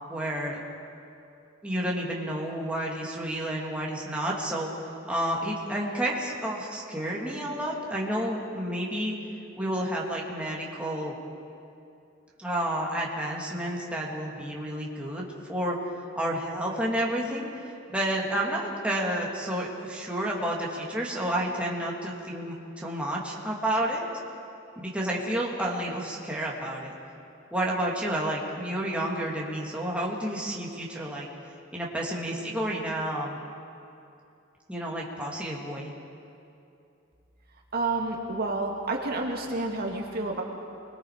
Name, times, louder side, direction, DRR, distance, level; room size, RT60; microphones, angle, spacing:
voice 1, 0.1-0.6 1.6-4.7 5.1-9.2 9.6-11.1 12.4-15.8 16.2-24.0 24.8-26.9 27.5-31.3 31.7-33.4 34.7-35.9, right 1 dB, 5° right, -4 dB, 2.7 m, -30 dB
voice 2, 37.7-40.4, right 2 dB, 50° right, 0 dB, 2.3 m, -29 dB
29.0 x 21.5 x 5.1 m, 2.7 s
head